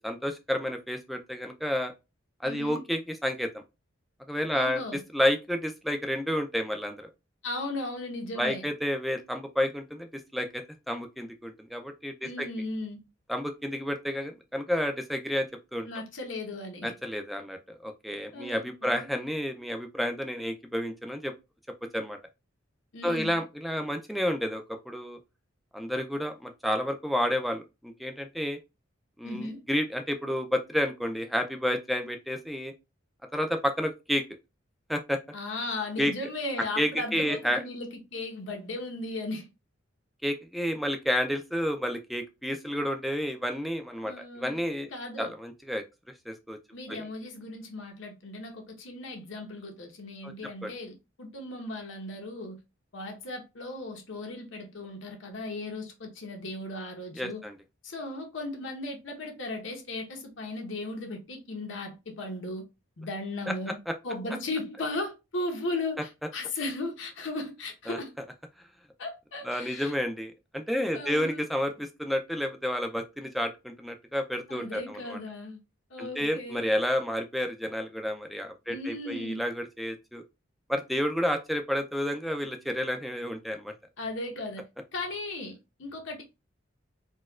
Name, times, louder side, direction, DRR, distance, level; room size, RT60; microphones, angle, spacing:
voice 1, 0.0-1.9 2.4-3.6 4.3-4.8 5.1-7.1 8.4-10.1 10.3-12.5 13.3-15.9 16.8-21.3 21.9-22.2 23.0-25.2 25.7-28.6 29.2-32.7 33.3-34.2 34.9-35.2 36.0-36.1 36.8-37.6 40.2-44.9 45.2-45.8 46.3-46.6 46.9-47.0 50.6-50.7 57.2-57.5 63.5-63.6 67.9-68.0 69.4-75.2 76.0-80.2 80.7-83.7, equal, ahead, 0.3 m, -30 dB
voice 2, 2.4-2.8 4.5-5.0 7.4-8.6 12.2-13.1 15.9-16.9 18.3-19.1 22.9-23.4 29.2-29.6 35.3-39.5 44.0-44.6 44.9-45.3 46.7-52.6 52.9-57.4 57.8-62.7 63.0-68.1 69.0-69.9 70.9-71.4 74.5-75.6 75.9-76.7 78.7-79.4 84.0-84.7 84.9-86.2, left 2 dB, 75° left, 0.9 m, -36 dB
4.1 x 2.2 x 2.3 m
head